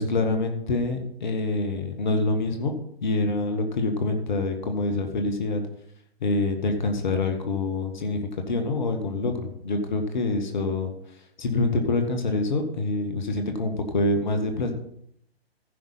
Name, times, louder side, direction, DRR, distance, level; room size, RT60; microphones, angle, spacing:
voice 1, 0.0-2.7 3.0-5.6 6.2-10.9 11.4-14.7, left 2 dB, 45° left, 5 dB, 1.7 m, -26 dB
14.5 x 5.8 x 5.8 m, 0.69 s
figure-of-eight pair, 130°, 31 cm